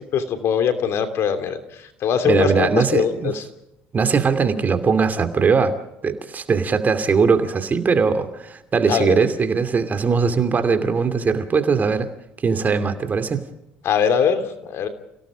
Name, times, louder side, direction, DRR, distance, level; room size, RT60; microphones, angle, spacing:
voice 1, 0.1-1.6 2.0-3.4 8.9-9.2 13.8-14.9, left 7 dB, 60° left, 8 dB, 3.0 m, -21 dB
voice 2, 2.2-3.3 3.9-5.8 6.0-12.1 12.4-13.5, right 5 dB, 35° right, 9 dB, 2.7 m, -20 dB
29.5 x 17.5 x 5.1 m, 0.85 s
supercardioid pair, 75°, 5 cm